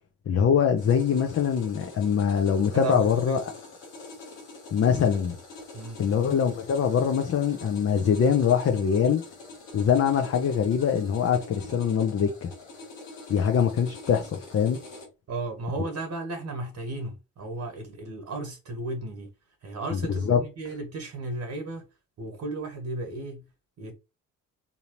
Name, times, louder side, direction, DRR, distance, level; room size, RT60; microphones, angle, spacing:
voice 1, 0.3-3.4 4.7-5.3 6.0-9.2 9.7-12.5 13.3-14.8 20.3-20.4, left 7 dB, 40° left, 0.8 m, -23 dB
sound 1, 0.8-15.0, left 2 dB, 85° left, 1.4 m, -45 dB
voice 2, 2.7-3.4 5.7-6.0 15.3-19.3 19.6-21.9 22.2-23.5 23.8-23.9, right 2 dB, 45° right, 1.3 m, -34 dB
3.7 x 2.8 x 3.0 m
figure-of-eight pair, 45°, 39 cm